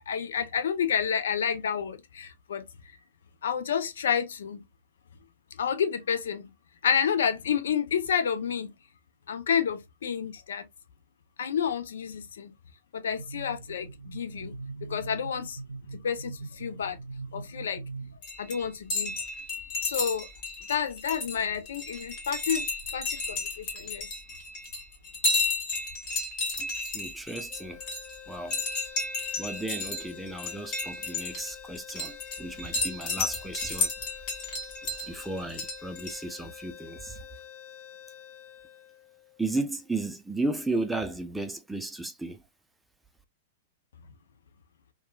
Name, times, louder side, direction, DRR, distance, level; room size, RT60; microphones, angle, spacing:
voice 1, 0.0-2.6 3.4-4.6 5.6-6.5 6.8-8.7 9.3-10.7 11.4-12.5 12.9-14.6 14.9-15.6 16.0-17.0 17.3-17.8 18.4-19.1 19.8-20.3 20.7-24.1, left 7 dB, 75° left, 0.5 m, -29 dB
sound 1, 13.2-18.2, right 3 dB, 90° right, 0.3 m, -41 dB
sound 2, 18.2-36.2, left 3 dB, 45° left, 1.5 m, -33 dB
voice 2, 26.6-27.8 28.3-28.6 29.4-33.9 34.9-37.3 39.4-42.4, right 2 dB, 5° right, 0.4 m, -34 dB
sound 3, 27.5-39.7, left 10 dB, 30° left, 1.0 m, -47 dB
2.9 x 2.2 x 2.2 m
hypercardioid pair, 115°, 0 cm